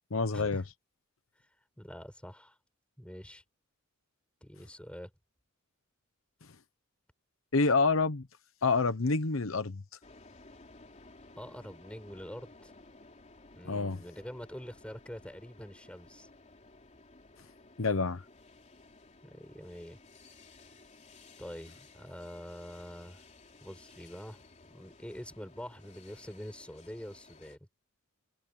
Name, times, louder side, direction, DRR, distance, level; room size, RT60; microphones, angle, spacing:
voice 1, 0.1-0.6 7.5-8.3 8.6-9.8 13.6-14.0 17.8-18.2, left 4 dB, 70° left, 1.0 m, -27 dB
voice 2, 1.8-2.6 3.0-3.4 4.4-5.1 11.4-12.7 13.5-16.3 19.2-20.0 21.4-23.2 23.6-27.6, equal, 5° left, 7.1 m, -45 dB
sound 1, 10.0-27.6, left 3 dB, 35° left, 3.3 m, -56 dB
head